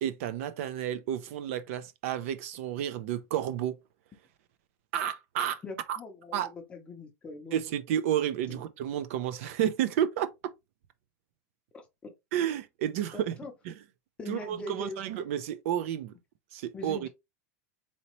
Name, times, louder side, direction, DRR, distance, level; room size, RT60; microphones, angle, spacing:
voice 1, 0.0-3.8 4.9-5.6 5.9-6.0 6.3-6.5 7.5-10.3 12.3-13.3 13.7-13.8 14.3-16.1 16.5-17.1, right 10 dB, 55° right, 0.4 m, -31 dB
voice 2, 5.6-7.6 8.5-8.6 11.7-12.1 13.1-13.5 14.2-15.0 16.7-17.1, left 3 dB, 15° left, 0.7 m, -42 dB
4.1 x 2.8 x 3.0 m
supercardioid pair, 170°, 9 cm